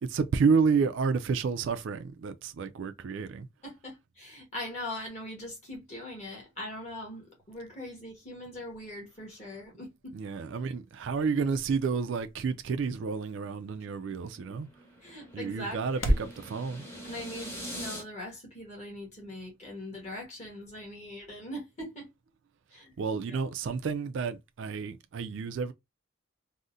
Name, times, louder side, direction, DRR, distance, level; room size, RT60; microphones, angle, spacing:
voice 1, 0.0-3.5 10.1-14.7 15.3-16.8 23.0-25.7, right 5 dB, 70° right, 0.3 m, -30 dB
voice 2, 3.6-10.2 14.1-14.2 15.0-16.1 17.0-22.1 22.7-22.9 23.3-23.4, left 1 dB, 35° left, 1.3 m, -41 dB
sound 1, 10.1-16.4, equal, 80° left, 0.6 m, -37 dB
sound 2, 13.7-18.0, equal, 10° left, 0.8 m, -43 dB
3.6 x 2.0 x 2.6 m
head